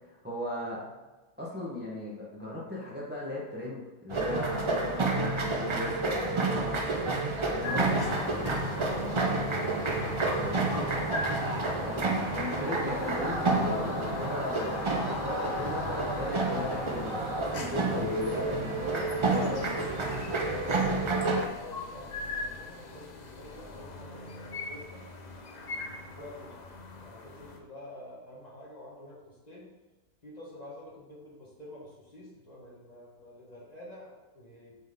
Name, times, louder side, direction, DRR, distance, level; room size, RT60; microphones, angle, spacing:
voice 1, 0.1-0.8 1.4-6.8 7.5-7.8 11.8-12.1 12.3-20.0, left 1 dB, 10° right, -5 dB, 1.1 m, -37 dB
sound 1, 4.1-21.5, right 3 dB, 45° right, 0.4 m, -30 dB
sound 2, 7.6-27.6, left 3 dB, 45° left, 0.6 m, -39 dB
voice 2, 21.5-25.0 26.2-26.6 27.0-29.7 30.2-34.7, left 1 dB, 30° left, -5 dB, 1.4 m, -48 dB
7.3 x 4.5 x 3.7 m, 1.2 s
omnidirectional pair, 1.5 m